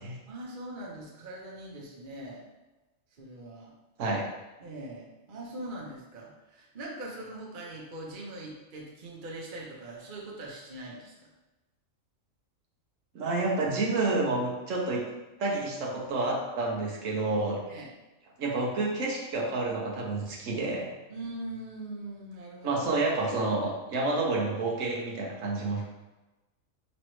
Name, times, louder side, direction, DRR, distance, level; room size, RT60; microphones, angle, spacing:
voice 1, 0.3-2.4 3.1-3.7 4.6-11.3 17.7-17.9 21.1-22.8, right 1 dB, 45° right, -3 dB, 0.9 m, -42 dB
voice 2, 13.1-15.1 15.4-17.6 18.4-20.9 22.6-25.8, right 2 dB, 70° right, -2 dB, 1.1 m, -29 dB
5.2 x 3.1 x 3.1 m, 1.1 s
omnidirectional pair, 1.4 m